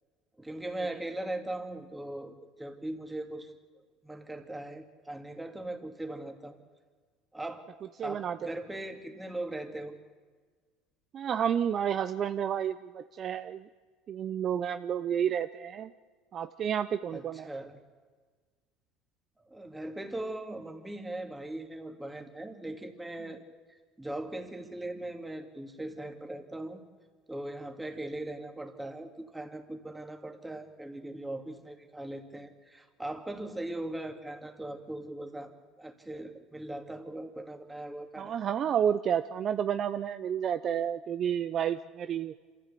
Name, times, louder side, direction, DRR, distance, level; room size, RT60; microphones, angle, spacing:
voice 1, 0.4-3.5 4.0-6.6 7.3-7.7 8.0-10.0 17.1-17.8 19.5-23.4 24.0-26.8 27.3-38.3, right 1 dB, 10° right, 4 dB, 2.5 m, -39 dB
voice 2, 8.0-8.5 11.1-13.7 14.1-15.9 16.3-17.5 38.2-42.3, right 8 dB, 45° right, 11 dB, 0.6 m, -30 dB
26.5 x 14.5 x 8.4 m, 1.5 s
supercardioid pair, 100°, 0 cm